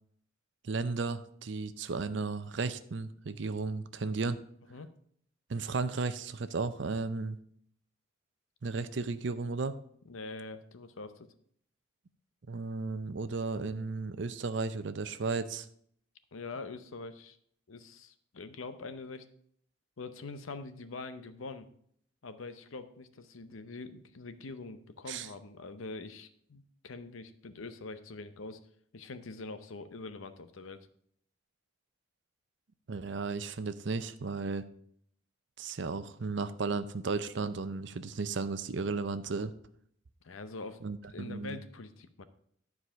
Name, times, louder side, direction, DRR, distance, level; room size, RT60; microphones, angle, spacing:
voice 1, 0.6-4.4 5.5-7.4 8.6-9.8 12.5-15.7 25.1-25.3 32.9-34.7 35.6-39.5 40.8-41.6, right 4 dB, 60° right, 12 dB, 0.6 m, -34 dB
voice 2, 10.1-11.3 16.3-17.4 17.7-19.2 20.0-21.7 22.2-28.6 28.9-30.9 40.2-40.8 41.1-42.2, left 3 dB, 90° left, 11 dB, 0.8 m, -44 dB
10.0 x 4.8 x 5.7 m, 0.65 s
head